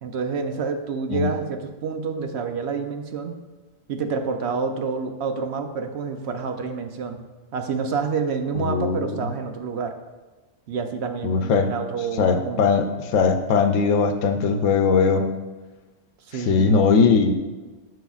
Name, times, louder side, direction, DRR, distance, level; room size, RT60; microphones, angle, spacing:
voice 1, 0.0-3.4 3.9-7.2 7.5-9.9 10.7-12.7 16.3-16.7, right 5 dB, 65° right, 6 dB, 0.9 m, -28 dB
voice 2, 8.6-9.3 11.2-11.7 12.2-15.3 16.5-17.4, left 5 dB, 90° left, 7 dB, 1.0 m, -20 dB
11.0 x 6.3 x 2.4 m, 1.2 s
omnidirectional pair, 1.3 m